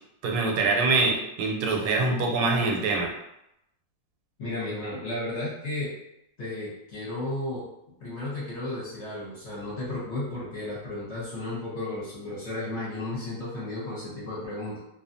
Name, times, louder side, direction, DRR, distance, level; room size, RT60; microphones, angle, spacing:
voice 1, 0.2-3.1, right 3 dB, 85° right, 1 dB, 1.2 m, -24 dB
voice 2, 4.4-5.9 6.4-7.7 8.0-14.8, left 2 dB, 50° left, -8 dB, 1.0 m, -33 dB
2.6 x 2.4 x 2.6 m, 0.82 s
omnidirectional pair, 1.9 m